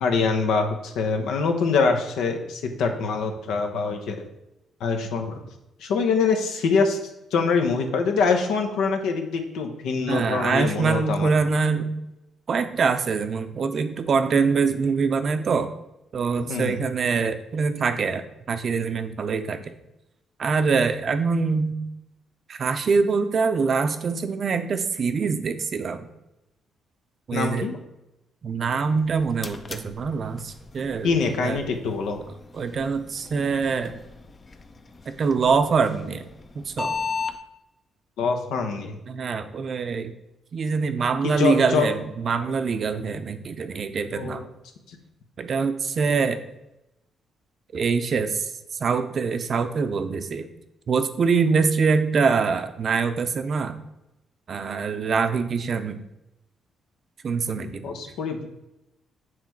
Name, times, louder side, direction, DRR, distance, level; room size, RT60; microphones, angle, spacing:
voice 1, 0.0-4.2 4.8-5.4 5.8-7.0 7.3-11.3 16.4-16.8 27.3-27.8 31.0-32.2 38.2-39.0 41.2-41.9 44.1-44.5 44.9-45.0 57.6-58.5, left 4 dB, 85° left, 4 dB, 0.8 m, -24 dB
voice 2, 10.1-11.9 12.5-15.7 16.1-19.6 20.4-21.7 22.5-26.1 27.3-27.7 28.4-31.6 32.5-34.0 35.1-36.2 36.6-37.0 39.1-40.1 40.5-44.4 45.4-46.4 47.7-48.5 48.8-50.5 50.9-53.8 54.5-56.0 57.2-57.9, right 5 dB, 50° right, 9 dB, 0.6 m, -24 dB
sound 1, 28.9-37.4, left 5 dB, 30° left, 0.5 m, -37 dB
7.6 x 3.1 x 4.5 m, 0.91 s
cardioid pair, 90°, 0 cm